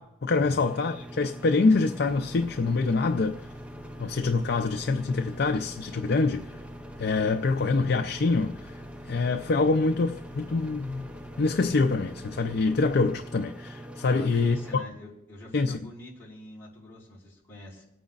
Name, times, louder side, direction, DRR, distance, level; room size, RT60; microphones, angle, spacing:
voice 1, 0.0-3.4 4.0-6.5 7.0-8.7 9.1-11.1 11.4-14.8 15.5-15.8, left 3 dB, 55° left, 0.5 m, -25 dB
sound 1, 0.7-14.8, right 1 dB, 5° right, 0.4 m, -43 dB
sound 2, 2.0-13.7, left 2 dB, 35° right, 1.5 m, -50 dB
voice 2, 14.1-17.8, left 1 dB, 10° left, 4.7 m, -45 dB
27.5 x 9.2 x 2.5 m
head